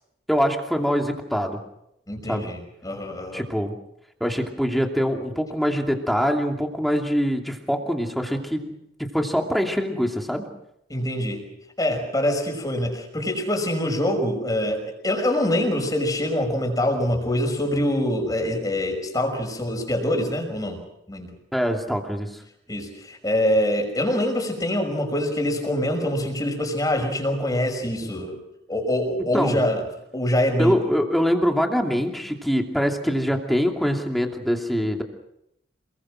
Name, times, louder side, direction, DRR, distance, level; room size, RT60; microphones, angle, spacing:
voice 1, 0.3-1.6 2.3-2.5 3.3-3.7 4.2-8.7 9.0-10.4 21.5-22.3 29.3-29.6 30.6-35.0, equal, ahead, 2 dB, 2.7 m, -24 dB
voice 2, 2.1-3.4 10.9-11.4 11.8-20.8 21.1-21.3 22.7-28.4 28.7-29.8 30.1-30.8, left 1 dB, 20° left, 4 dB, 5.8 m, -24 dB
28.0 x 22.0 x 6.4 m, 0.80 s
head